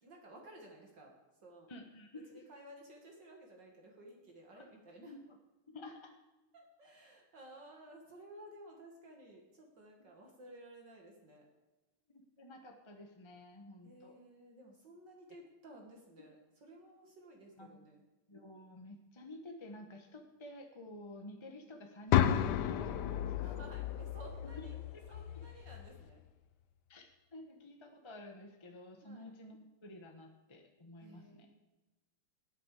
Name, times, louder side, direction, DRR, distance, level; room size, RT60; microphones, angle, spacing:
voice 1, 0.0-1.1 1.4-1.7 2.1-5.2 6.5-11.5 13.8-18.0 23.1-24.8 25.1-26.2 29.0-29.3 31.0-31.6, right 1 dB, 55° right, 0 dB, 2.4 m, -55 dB
voice 2, 1.7-2.4 4.5-4.7 5.0-5.2 5.7-6.1 10.0-10.1 12.4-14.2 17.6-17.7 18.3-23.6 24.4-24.7 24.9-25.4 26.9-31.5, left 1 dB, 20° left, 3 dB, 0.7 m, -51 dB
sound 1, 22.1-26.1, left 11 dB, 70° left, 1.0 m, -33 dB
18.0 x 9.1 x 4.9 m, 1.1 s
omnidirectional pair, 2.3 m